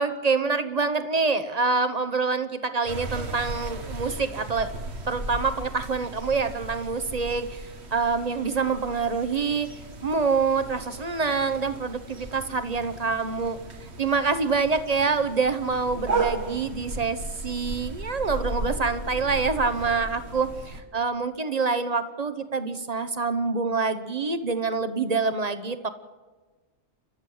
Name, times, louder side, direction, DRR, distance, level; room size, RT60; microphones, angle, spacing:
voice 1, 0.0-4.7 5.1-7.6 7.9-9.7 10.0-13.6 14.0-25.9, right 4 dB, 35° right, 11 dB, 1.1 m, -26 dB
sound 1, 2.8-20.8, right 2 dB, 65° right, 1.9 m, -36 dB
29.5 x 12.5 x 7.8 m, 1.3 s
omnidirectional pair, 1.2 m